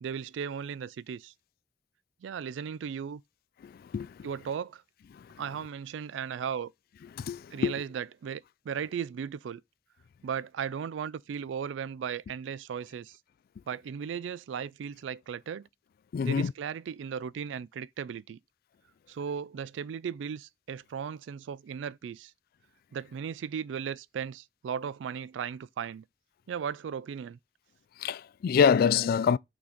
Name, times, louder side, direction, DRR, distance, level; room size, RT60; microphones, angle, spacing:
voice 1, 0.0-1.3 2.2-3.2 4.2-4.8 5.4-6.7 7.5-9.6 10.2-13.2 13.7-15.7 16.2-18.4 19.1-22.3 22.9-26.0 26.5-27.4, right 7 dB, 85° right, 0.3 m, -36 dB
voice 2, 3.6-4.1 7.2-7.7 16.1-16.5 28.0-29.4, left 6 dB, 55° left, 0.3 m, -25 dB
6.0 x 4.0 x 5.0 m
head